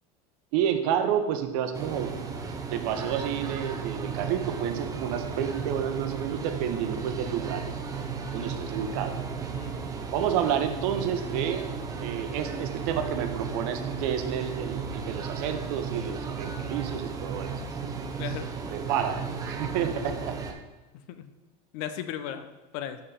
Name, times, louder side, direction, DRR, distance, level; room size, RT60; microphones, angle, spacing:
voice 1, 0.5-2.1 2.7-7.6 8.3-9.2 10.1-11.6 12.0-17.5 17.8-17.9 18.7-19.2 19.5-20.3, right 9 dB, 60° right, 8 dB, 0.8 m, -30 dB
sound 1, 1.7-20.5, right 5 dB, 15° right, 0.6 m, -35 dB
voice 2, 20.9-21.3 21.7-23.0, left 9 dB, 60° left, 10 dB, 0.6 m, -37 dB
5.7 x 4.7 x 4.9 m, 1.1 s
supercardioid pair, 130°, 21 cm